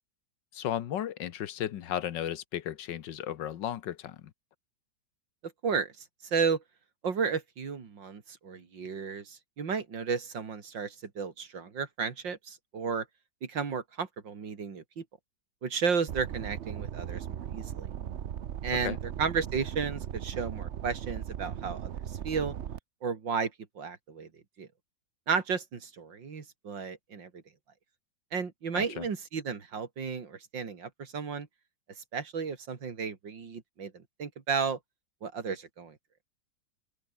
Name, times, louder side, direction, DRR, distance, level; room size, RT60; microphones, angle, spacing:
voice 1, 0.5-4.3 18.8-19.0 28.7-29.1, left 11 dB, 70° left, 1.6 m, -35 dB
voice 2, 5.6-5.9 6.2-6.6 7.0-13.1 13.4-15.0 15.6-17.9 18.6-21.9 22.2-22.5 23.0-24.3 24.6-24.7 25.3-27.4 28.3-31.5 32.1-34.8 35.2-36.0, right 5 dB, 75° right, 3.1 m, -33 dB
sound 1, 16.1-22.8, right 10 dB, 60° right, 0.7 m, -38 dB
open air
omnidirectional pair, 2.0 m